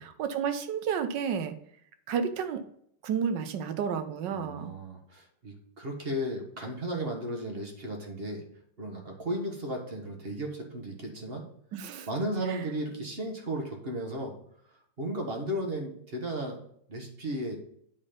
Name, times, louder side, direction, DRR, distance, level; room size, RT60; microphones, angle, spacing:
voice 1, 0.2-1.5 2.1-2.6 3.0-4.7 11.7-12.1 12.5-12.6, right 7 dB, 65° right, 9 dB, 1.4 m, -31 dB
voice 2, 4.3-8.4 8.8-11.4 12.1-14.3 15.0-16.6 16.9-17.6, right 1 dB, 30° right, 2 dB, 1.6 m, -34 dB
9.0 x 4.0 x 5.2 m, 0.67 s
omnidirectional pair, 2.3 m